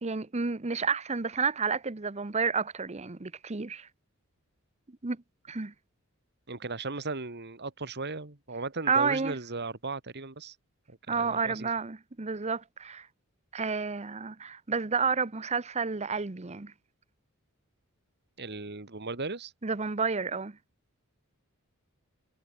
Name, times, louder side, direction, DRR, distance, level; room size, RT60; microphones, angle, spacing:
voice 1, 0.0-3.9 5.0-5.2 5.5-5.7 8.9-9.4 11.1-13.1 13.5-16.7 19.6-20.6, right 5 dB, 30° right, 0.8 m, -30 dB
voice 2, 6.5-10.6 10.9-11.7 18.4-19.5, right 3 dB, 50° right, 2.2 m, -37 dB
head